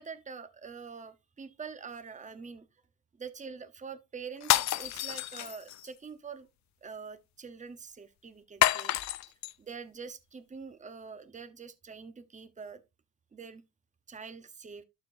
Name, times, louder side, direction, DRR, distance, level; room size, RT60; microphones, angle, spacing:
voice 1, 0.0-2.6 3.2-6.5 6.8-9.0 9.6-12.8 13.3-13.6 14.1-14.8, right 5 dB, 25° right, 0.9 m, -45 dB
sound 1, 4.4-5.9 8.6-9.5, left 15 dB, 65° left, 0.5 m, -28 dB
12.0 x 4.5 x 2.6 m
cardioid pair, 90°, 30 cm